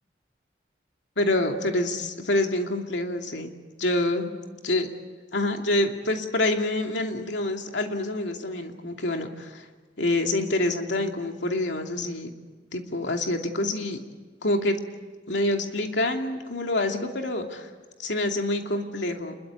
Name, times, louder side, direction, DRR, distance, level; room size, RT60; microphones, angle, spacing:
voice 1, 1.2-3.5 3.8-4.3 4.6-4.9 5.3-9.6 10.0-12.3 12.7-14.0 14.4-14.8 15.3-17.7 18.0-19.3, left 1 dB, 75° left, 3 dB, 2.7 m, -26 dB
28.0 x 22.0 x 8.4 m, 1.4 s
head